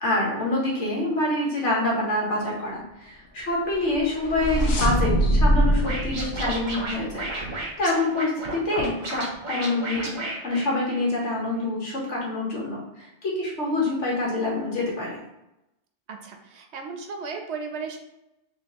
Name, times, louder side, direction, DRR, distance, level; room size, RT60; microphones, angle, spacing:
voice 1, 0.0-7.3 7.8-10.1 10.4-12.8 13.2-15.2, left 2 dB, 80° left, -3 dB, 1.5 m, -26 dB
sound 1, 3.8-7.4, equal, 60° left, 0.8 m, -23 dB
Scratching (performance technique), 5.8-11.3, right 2 dB, 45° right, 0.9 m, -33 dB
voice 2, 16.1-18.0, right 5 dB, 70° right, 4 dB, 0.9 m, -35 dB
3.7 x 3.3 x 2.9 m, 0.90 s
omnidirectional pair, 1.2 m